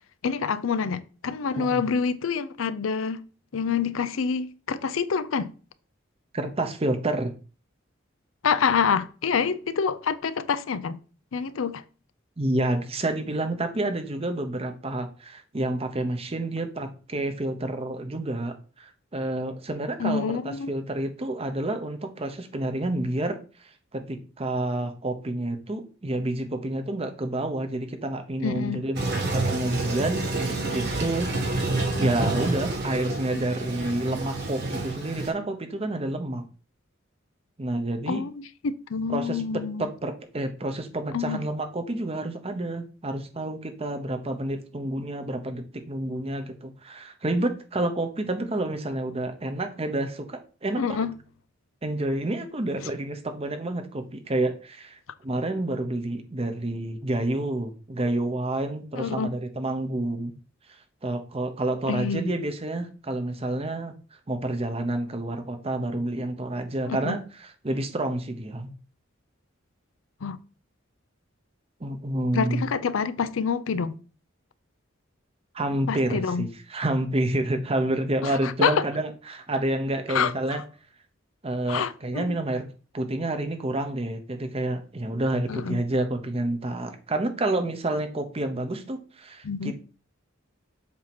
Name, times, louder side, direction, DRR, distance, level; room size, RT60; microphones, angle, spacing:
voice 1, 0.2-3.2 3.5-5.5 8.4-11.0 11.3-11.8 20.0-20.7 28.4-28.8 33.3-33.4 38.1-39.8 41.1-41.4 50.8-51.1 59.0-59.3 61.9-62.3 66.8-67.2 70.2-70.4 72.3-74.0 75.9-76.5 78.2-78.8 80.1-80.3 81.7-82.4 85.5-85.8 89.4-89.7, left 6 dB, 75° left, 0.5 m, -27 dB
voice 2, 6.3-7.3 12.4-23.4 23.9-29.0 29.3-30.2 30.5-31.3 32.0-36.4 37.6-38.2 39.1-39.4 39.8-51.0 51.8-55.0 55.2-60.3 61.0-63.9 64.3-68.7 71.8-72.6 75.5-80.6 81.4-82.7 82.9-89.7, right 1 dB, 30° right, 0.8 m, -29 dB
Toilet flush, 29.0-35.3, right 2 dB, 55° right, 1.5 m, -28 dB
7.4 x 2.9 x 5.9 m
head